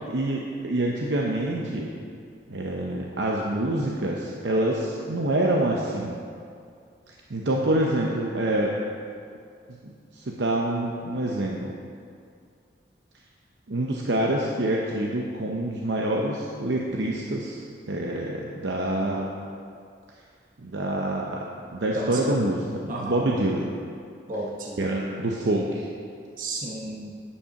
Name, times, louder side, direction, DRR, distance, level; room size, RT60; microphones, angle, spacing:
voice 1, 0.1-1.9 2.5-6.2 7.3-8.8 10.1-11.8 13.7-17.6 17.9-19.3 20.6-21.4 21.7-23.7 24.8-25.9, right 1 dB, 75° right, -2 dB, 0.7 m, -26 dB
voice 2, 22.9-23.2 24.3-25.1 26.4-27.1, right 2 dB, 45° right, -2 dB, 0.9 m, -33 dB
9.7 x 5.5 x 5.8 m, 2.3 s
head